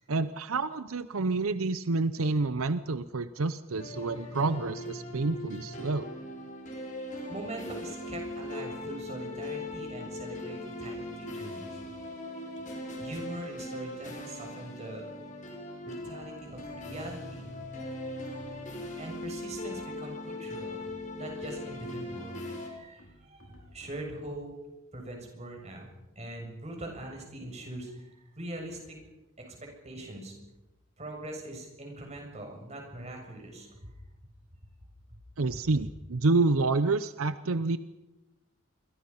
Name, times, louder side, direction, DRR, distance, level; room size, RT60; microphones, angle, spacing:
voice 1, 0.1-6.1 35.4-37.8, right 3 dB, 80° right, 13 dB, 0.7 m, -28 dB
sound 1, 3.8-22.7, left 1 dB, 35° left, 5.3 m, -40 dB
voice 2, 7.3-11.8 13.0-15.1 15.9-17.6 19.0-24.5 24.9-25.9 26.2-29.0 29.4-30.3 31.0-33.9 35.5-35.6, right 1 dB, 30° right, 2 dB, 7.2 m, -42 dB
sound 2, 16.4-18.0 18.4-20.2 20.7-22.3 23.0-24.5, equal, 80° left, 5.3 m, -57 dB
28.0 x 24.0 x 5.7 m, 1.0 s
head